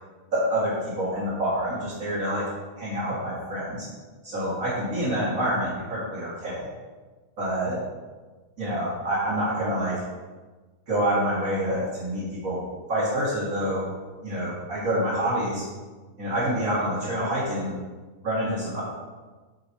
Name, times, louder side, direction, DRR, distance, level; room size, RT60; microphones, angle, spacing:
voice 1, 0.3-2.4 2.8-3.9 4.2-6.7 7.4-7.8 8.6-10.0 10.9-12.6 12.9-13.9 14.2-15.6 16.2-17.7 18.2-18.8, right 1 dB, 70° right, -8 dB, 0.7 m, -27 dB
10.5 x 4.7 x 4.8 m, 1.3 s
omnidirectional pair, 5.6 m